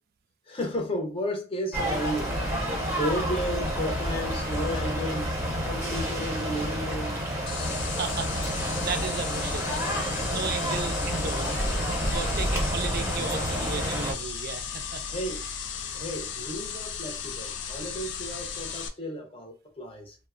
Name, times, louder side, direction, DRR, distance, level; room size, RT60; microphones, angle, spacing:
voice 1, 0.5-2.5 2.8-7.2 15.1-15.5 15.9-20.2, equal, 30° left, 0.7 m, -33 dB
sound 1, 1.7-14.1, equal, 15° right, 0.8 m, -29 dB
sound 2, 7.5-18.9, left 7 dB, 70° left, 0.4 m, -36 dB
voice 2, 8.0-11.6 12.1-15.1, right 5 dB, 50° right, 0.4 m, -35 dB
3.0 x 2.1 x 2.4 m
head